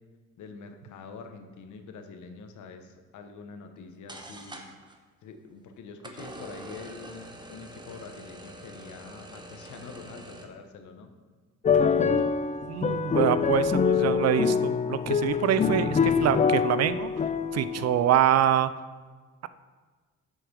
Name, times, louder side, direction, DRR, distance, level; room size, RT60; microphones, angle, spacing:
voice 1, 0.4-4.6 5.2-11.1 11.7-12.2, left 5 dB, 75° left, 6 dB, 1.0 m, -45 dB
sound 1, 3.8-3.9 4.1-5.0 6.0-10.5, right 1 dB, 15° right, 1.0 m, -45 dB
sound 2, 11.6-18.0, left 6 dB, 25° left, 0.4 m, -25 dB
voice 2, 12.7-17.1 17.5-18.7, right 11 dB, 60° right, 14 dB, 0.5 m, -25 dB
7.8 x 4.9 x 6.1 m, 1.4 s
cardioid pair, 90°, 30 cm